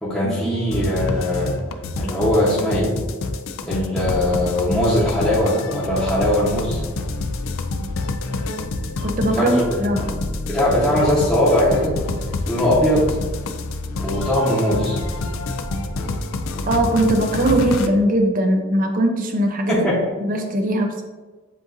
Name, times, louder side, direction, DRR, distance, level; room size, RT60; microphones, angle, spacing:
voice 1, 0.0-1.5 2.0-2.9 3.6-6.8 9.3-9.8 10.5-11.9 12.5-13.1 14.0-15.0 19.7-20.0, left 1 dB, 5° left, -11 dB, 0.9 m, -20 dB
sound 1, 0.7-17.9, left 2 dB, 75° left, 0.4 m, -27 dB
voice 2, 9.0-10.2 16.7-19.8 20.2-21.0, right 1 dB, 40° right, 3 dB, 0.6 m, -20 dB
7.4 x 2.6 x 2.6 m, 1.3 s
head